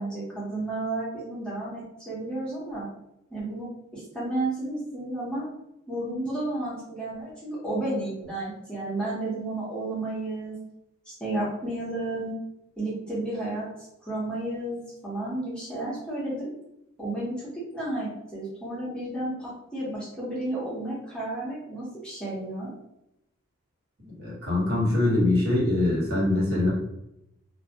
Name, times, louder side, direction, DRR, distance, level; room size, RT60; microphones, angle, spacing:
voice 1, 0.0-2.9 3.3-5.5 5.9-10.6 11.1-12.3 12.8-13.7 14.0-16.5 17.0-17.3 17.7-22.7, right 2 dB, 5° left, -9 dB, 0.7 m, -32 dB
voice 2, 24.0-26.7, left 2 dB, 50° right, -7 dB, 1.2 m, -23 dB
2.1 x 2.1 x 2.7 m, 0.83 s
head